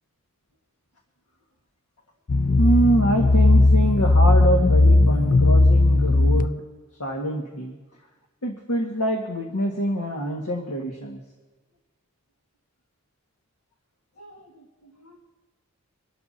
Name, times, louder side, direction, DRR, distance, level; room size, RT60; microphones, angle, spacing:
sound 1, 2.3-6.5, left 2 dB, 35° left, 0.4 m, -17 dB
voice 1, 2.6-6.6 7.0-7.8 8.4-11.2 14.2-15.2, right 1 dB, 90° left, 1 dB, 1.7 m, -25 dB
25.5 x 12.5 x 2.8 m, 1.3 s
head